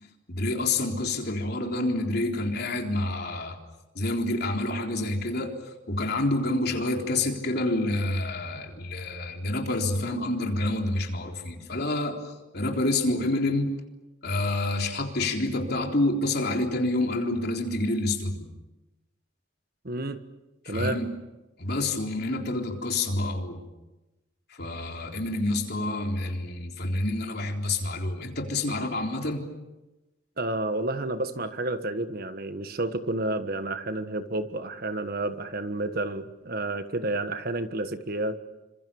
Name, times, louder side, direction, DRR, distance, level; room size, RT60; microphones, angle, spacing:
voice 1, 0.3-3.6 4.0-5.5 5.9-12.2 12.5-13.7 14.2-18.5 20.6-21.1 21.6-23.7 24.5-29.4, left 2 dB, 55° left, 2 dB, 3.8 m, -28 dB
voice 2, 19.8-20.2 20.7-21.0 30.4-38.4, right 2 dB, 50° right, 10 dB, 1.5 m, -30 dB
27.5 x 25.5 x 7.1 m, 1.0 s
head